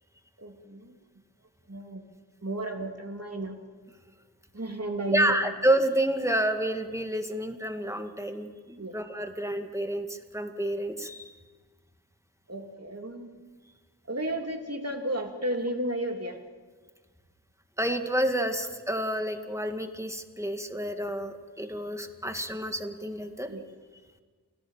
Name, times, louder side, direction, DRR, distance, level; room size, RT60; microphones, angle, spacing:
voice 1, 0.4-1.0 1.7-2.0 2.4-3.6 4.5-5.6 8.8-9.0 12.5-13.3 14.1-16.4 23.5-23.7, right 1 dB, 40° right, 3 dB, 3.0 m, -33 dB
voice 2, 5.1-11.3 17.8-23.5, right 1 dB, 5° right, 5 dB, 2.2 m, -29 dB
28.5 x 18.5 x 7.5 m, 1.5 s
wide cardioid pair, 45°, 39 cm